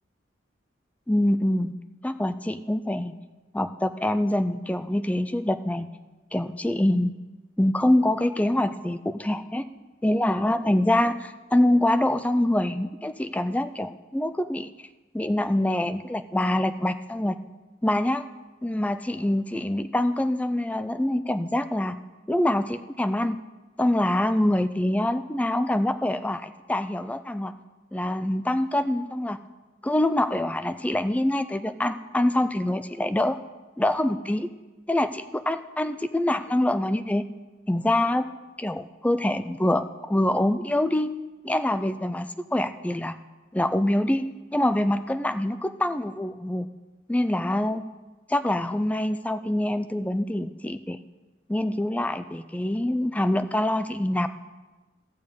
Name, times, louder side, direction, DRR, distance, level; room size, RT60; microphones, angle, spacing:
voice 1, 1.1-1.7 2.0-3.1 3.5-5.9 6.3-7.1 7.6-9.7 10.0-14.7 15.1-17.4 17.8-18.2 18.6-22.0 22.3-23.4 23.8-27.5 27.9-29.4 29.8-33.4 33.8-34.5 34.9-37.3 37.7-38.3 38.6-41.1 41.4-43.2 43.5-44.3 44.5-46.7 47.1-47.8 48.3-51.0 51.5-54.3, left 1 dB, 10° left, 11 dB, 0.4 m, -25 dB
15.0 x 6.8 x 5.2 m, 1.2 s
head